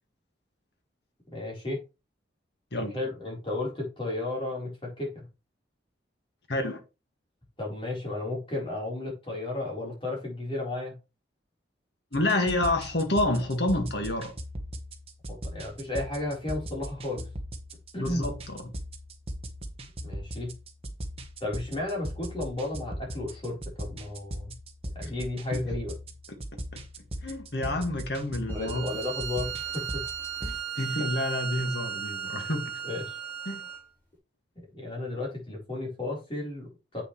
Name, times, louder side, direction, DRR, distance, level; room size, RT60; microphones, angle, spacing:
voice 1, 1.3-1.8 2.8-5.3 7.6-10.9 15.3-17.3 17.9-18.2 20.0-20.5 21.4-24.5 24.9-25.9 28.5-30.1 32.8-33.2 34.7-37.0, left 2 dB, 30° left, 4.1 m, -33 dB
voice 2, 6.5-6.8 12.1-14.4 18.0-18.7 25.0-25.1 25.5-25.6 26.3-26.8 27.2-28.9 30.4-32.8 33.5-33.6, left 1 dB, 65° left, 1.9 m, -29 dB
sound 1, 12.1-30.5, equal, 30° right, 1.2 m, -39 dB
Bowed string instrument, 28.5-33.8, right 8 dB, 10° left, 4.3 m, -36 dB
8.2 x 6.3 x 3.2 m
head